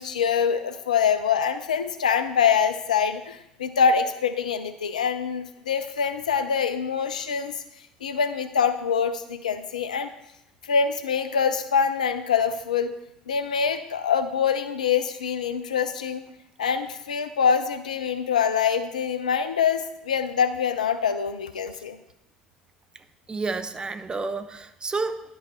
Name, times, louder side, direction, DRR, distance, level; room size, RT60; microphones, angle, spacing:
voice 1, 0.0-7.5 8.0-10.1 10.6-12.9 13.3-16.2 16.6-22.0, left 6 dB, 75° left, 10 dB, 0.5 m, -24 dB
voice 2, 23.3-25.2, right 3 dB, 20° right, 10 dB, 0.6 m, -30 dB
10.5 x 5.5 x 4.4 m, 0.85 s
figure-of-eight pair, 65°, 4 cm